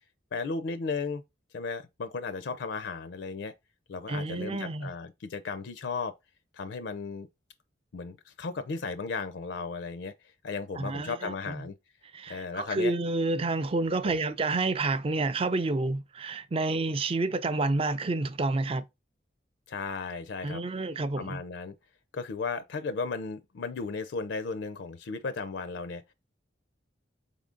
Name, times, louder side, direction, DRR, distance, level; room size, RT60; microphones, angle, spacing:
voice 1, 0.3-1.2 1.5-3.5 3.9-6.1 6.5-7.3 7.9-10.1 10.4-11.7 12.3-12.9 14.1-14.2 19.7-20.6 21.2-21.7 22.1-26.0, left 4 dB, 65° left, 0.4 m, -35 dB
voice 2, 4.1-4.9 10.8-11.6 12.1-18.8 20.4-21.4, right 3 dB, 30° right, 0.4 m, -29 dB
3.8 x 3.7 x 3.7 m
head